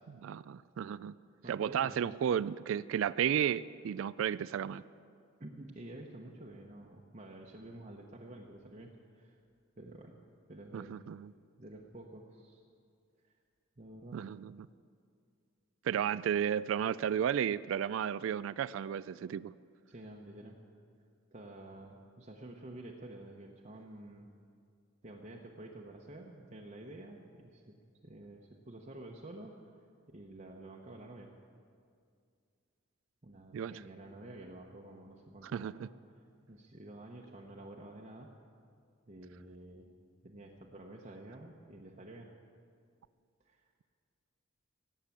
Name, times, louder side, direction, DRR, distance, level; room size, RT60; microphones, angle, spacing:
voice 1, 0.1-1.2 1.5-4.8 10.7-11.3 14.1-14.7 15.8-19.5 33.5-33.7 35.4-35.9, right 9 dB, 75° right, 18 dB, 0.3 m, -33 dB
voice 2, 1.4-2.0 5.4-9.4 9.8-10.2 10.5-11.0 11.6-12.6 13.2-13.3 13.8-14.2 19.9-20.6 21.3-24.3 25.0-27.7 28.0-29.7 30.1-31.3 33.2-38.3 39.1-39.9 40.2-42.3 43.4-43.6, right 1 dB, 35° right, -1 dB, 0.9 m, -50 dB
18.0 x 8.3 x 8.4 m, 2.3 s
head